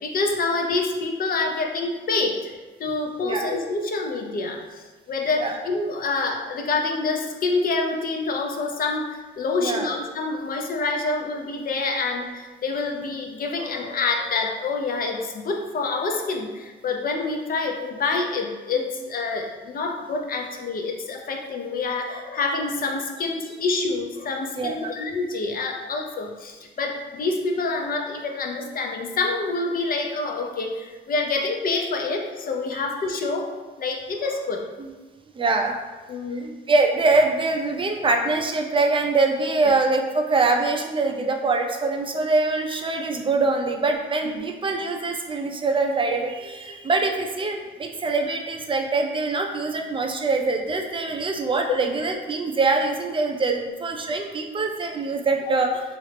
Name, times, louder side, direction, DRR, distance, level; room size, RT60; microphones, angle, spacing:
voice 1, 0.0-2.5 2.8-33.5 33.8-34.7 36.1-36.5 44.4-44.5 51.7-51.8, left 3 dB, 45° left, 2 dB, 0.5 m, -27 dB
voice 2, 24.5-24.9 32.7-32.8 34.8-34.9 35.3-35.7 36.7-55.8, right 3 dB, 25° right, 3 dB, 0.4 m, -24 dB
3.1 x 2.4 x 3.2 m, 1.3 s
cardioid pair, 90°, 20 cm